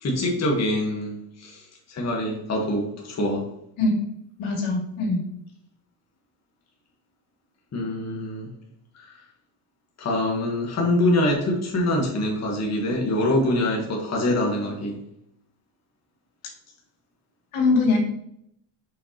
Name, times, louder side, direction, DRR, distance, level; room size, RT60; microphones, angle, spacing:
voice 1, 0.0-3.4 7.7-8.5 8.9-9.2 10.0-15.0, left 1 dB, 35° left, -1 dB, 1.3 m, -25 dB
voice 2, 4.4-5.2 17.5-18.0, left 3 dB, 80° left, -1 dB, 2.5 m, -22 dB
6.3 x 5.5 x 2.9 m, 0.76 s
cardioid pair, 120°, 48 cm